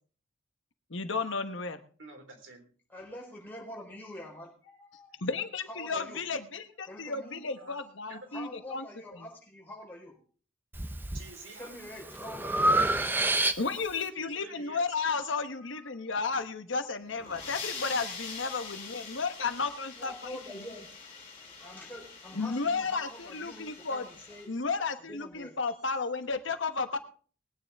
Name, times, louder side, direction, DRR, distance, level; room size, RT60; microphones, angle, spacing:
voice 1, 0.9-1.8 5.2-8.8 13.6-20.1 22.3-24.0 24.5-27.0, left 4 dB, 70° left, 9 dB, 1.1 m, -33 dB
voice 2, 2.0-2.7 7.6-7.8 8.1-8.4 11.1-11.7 14.2-14.8, right 2 dB, 75° right, 3 dB, 3.7 m, -48 dB
voice 3, 2.9-5.2 5.7-6.2 6.8-10.2 11.6-12.9 15.6-16.2 19.6-20.9 21.4-24.5 25.0-26.0, left 1 dB, 10° left, -2 dB, 4.4 m, -46 dB
Breathing, 10.7-11.2 11.7-14.0, right 1 dB, 10° right, 0.6 m, -27 dB
sound 1, 17.0-24.5, left 5 dB, 30° left, 4.3 m, -44 dB
20.5 x 9.7 x 3.5 m, 0.42 s
head